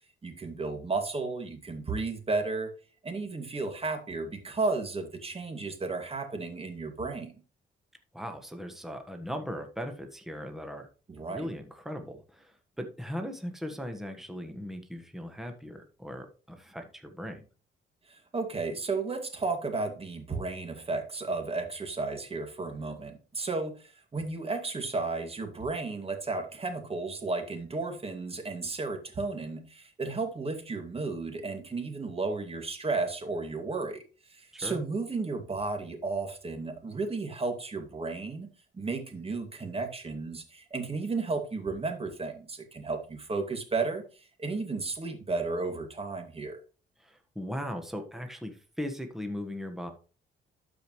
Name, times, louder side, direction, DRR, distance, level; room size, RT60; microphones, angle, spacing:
voice 1, 0.2-2.7 3.0-7.3 11.1-11.5 18.1-34.0 34.3-38.5 38.7-44.0 44.4-46.6, right 3 dB, 30° right, 2.2 m, -33 dB
voice 2, 8.1-10.9 11.2-17.4 34.5-34.8 47.0-49.9, equal, ahead, 1.4 m, -38 dB
12.5 x 5.1 x 3.1 m
cardioid pair, 90°, 20 cm